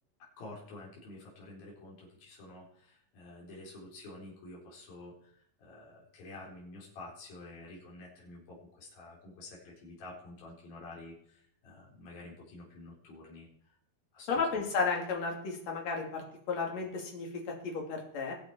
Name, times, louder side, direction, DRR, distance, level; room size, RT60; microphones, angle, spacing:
voice 1, 0.4-13.5 14.1-14.7, left 2 dB, 75° left, -4 dB, 6.2 m, -49 dB
voice 2, 14.3-18.3, left 4 dB, 50° left, 1 dB, 3.8 m, -33 dB
21.5 x 8.7 x 4.4 m, 0.67 s
omnidirectional pair, 4.3 m